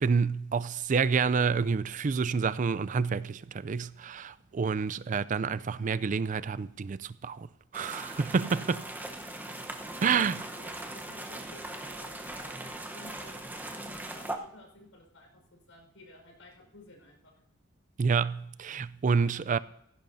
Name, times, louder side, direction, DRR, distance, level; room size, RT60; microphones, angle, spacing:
voice 1, 0.0-7.5 7.7-8.8 10.0-10.3 18.0-19.6, right 5 dB, 40° right, 0.4 m, -28 dB
sound 1, 7.7-14.4, right 1 dB, 10° right, 0.9 m, -40 dB
voice 2, 8.6-8.9 10.1-12.5 12.8-17.3 19.2-19.6, left 2 dB, 85° left, 4.8 m, -54 dB
16.5 x 15.5 x 2.7 m
head